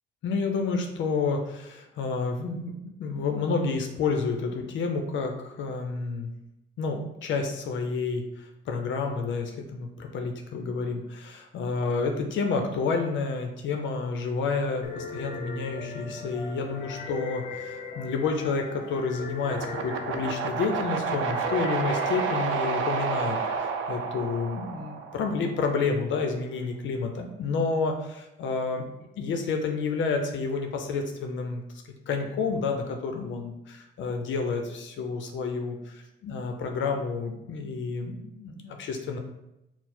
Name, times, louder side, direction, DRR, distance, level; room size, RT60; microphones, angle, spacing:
voice 1, 0.2-6.3 6.8-28.9 29.2-31.6 32.1-39.2, left 4 dB, 70° left, 4 dB, 0.5 m, -30 dB
sound 1, 14.8-23.6, left 4 dB, 40° left, 0.7 m, -39 dB
sound 2, 19.5-25.6, right 5 dB, 80° right, 0.5 m, -30 dB
4.4 x 2.0 x 4.2 m, 0.88 s
cardioid pair, 90°, 20 cm